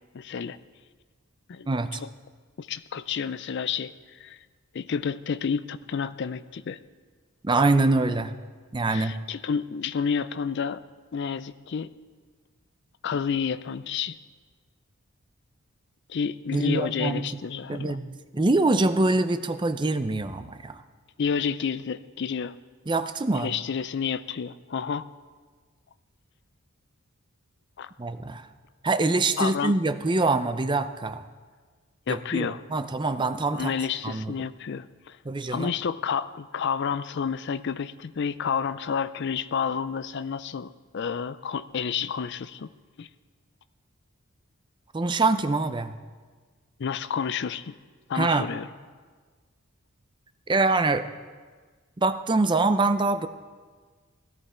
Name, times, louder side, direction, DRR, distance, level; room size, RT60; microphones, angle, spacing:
voice 1, 0.1-0.6 1.5-1.7 2.0-2.1 2.6-4.4 4.7-6.8 8.9-10.8 11.1-11.9 13.0-14.2 16.1-18.0 21.2-22.5 23.3-25.1 27.8-27.9 29.4-29.7 32.1-32.6 33.5-35.2 35.5-42.7 43.0-43.1 46.8-47.7 48.1-48.7, left 6 dB, 50° left, 15 dB, 0.4 m, -30 dB
voice 2, 1.7-2.0 7.4-8.3 8.7-9.2 16.5-17.2 17.7-20.8 22.9-23.5 28.0-28.5 28.8-31.3 32.1-33.7 34.0-34.3 35.3-35.7 44.9-46.0 48.1-48.5 50.5-51.1 52.0-53.3, right 3 dB, 20° right, 10 dB, 0.5 m, -24 dB
17.0 x 13.5 x 4.3 m, 1.5 s
head